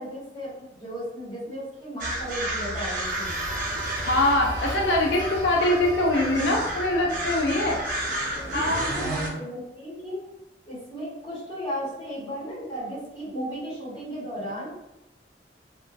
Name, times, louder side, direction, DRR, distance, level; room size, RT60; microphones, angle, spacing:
voice 1, 0.0-3.3 8.3-10.2 10.6-14.7, equal, 25° left, -10 dB, 1.2 m, -35 dB
sound 1, 2.0-9.3, right 1 dB, 50° right, 0.6 m, -31 dB
sound 2, 2.7-8.4, equal, 30° right, 1.1 m, -40 dB
voice 2, 3.9-7.8 8.5-9.1, left 1 dB, 75° left, 0 dB, 0.4 m, -23 dB
2.9 x 2.2 x 2.5 m, 0.93 s
head